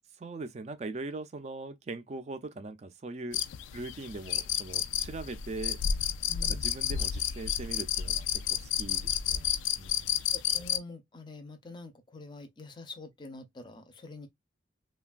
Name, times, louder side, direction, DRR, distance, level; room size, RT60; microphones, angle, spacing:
voice 1, 0.2-3.4 3.7-5.8 6.4-10.2, right 3 dB, 35° right, 0.4 m, -41 dB
sound 1, 3.3-10.8, left 10 dB, 75° left, 0.3 m, -31 dB
voice 2, 6.3-6.7 10.3-14.3, left 3 dB, 25° left, 0.5 m, -46 dB
3.2 x 2.2 x 2.4 m
head